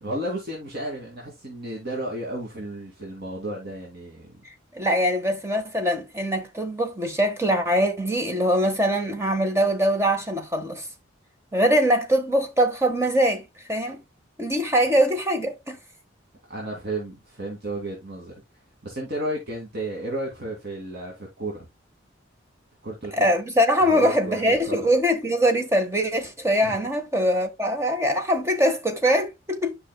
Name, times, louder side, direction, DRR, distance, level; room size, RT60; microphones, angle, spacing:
voice 1, 0.0-4.4 16.5-18.3 18.8-21.7 22.8-23.3 23.8-24.9 26.6-26.8, right 1 dB, 50° right, 2.4 m, -33 dB
voice 2, 4.7-10.9 11.5-14.0 14.4-15.8 23.1-29.8, equal, 15° right, 1.3 m, -22 dB
11.0 x 5.7 x 2.2 m
head